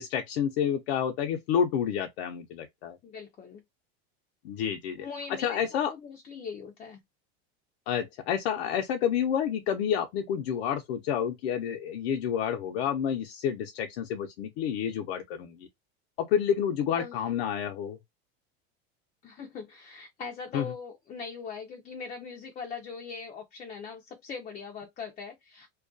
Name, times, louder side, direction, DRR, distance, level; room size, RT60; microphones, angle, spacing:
voice 1, 0.0-3.0 4.4-5.1 5.4-5.9 7.9-15.6 16.2-18.0 20.5-20.7, left 8 dB, 75° left, 0.5 m, -29 dB
voice 2, 3.0-3.6 5.0-5.6 5.9-7.0 16.9-17.2 19.2-25.7, left 5 dB, 25° left, 0.4 m, -41 dB
2.3 x 2.2 x 2.4 m
supercardioid pair, 125°, 31 cm